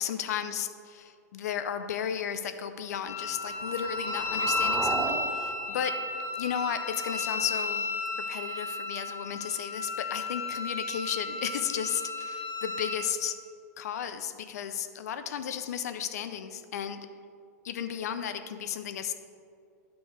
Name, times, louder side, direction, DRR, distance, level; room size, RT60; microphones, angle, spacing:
voice 1, 0.0-5.9 6.4-7.9 8.3-13.4 13.8-17.0 17.6-19.1, left 9 dB, 70° left, 10 dB, 0.6 m, -34 dB
Wind instrument woodwind instrument, 3.1-13.0, left 2 dB, 25° left, 1.4 m, -33 dB
sound 1, 3.2-7.2, right 5 dB, 15° right, 0.4 m, -38 dB
9.2 x 6.3 x 4.7 m, 2.3 s
hypercardioid pair, 120°, 9 cm